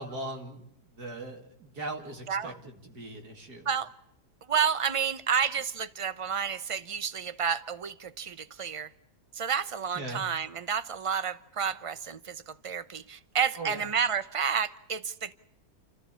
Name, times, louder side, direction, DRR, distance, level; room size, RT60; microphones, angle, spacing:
voice 1, 0.0-3.7 9.9-10.3 13.6-13.9, right 2 dB, 75° right, 2 dB, 3.1 m, -40 dB
voice 2, 4.5-8.9 9.4-15.3, right 7 dB, 30° right, 14 dB, 0.6 m, -30 dB
29.5 x 14.0 x 8.5 m, 0.77 s
omnidirectional pair, 1.7 m